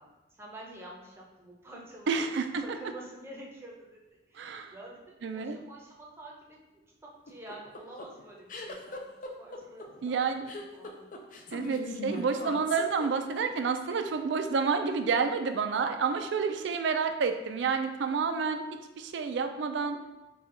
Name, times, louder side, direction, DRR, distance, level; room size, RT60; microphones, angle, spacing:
voice 1, 0.0-2.2 2.6-4.0 4.3-10.4 10.7-11.2, right 1 dB, 15° right, -3 dB, 0.7 m, -48 dB
voice 2, 2.1-2.8 4.3-4.7 5.2-5.6 10.0-10.5 11.5-18.6 19.0-20.0, right 5 dB, 65° right, 7 dB, 0.4 m, -29 dB
sound 1, 7.3-13.5, left 2 dB, 45° left, 0.4 m, -40 dB
4.2 x 2.3 x 3.8 m, 1.1 s
head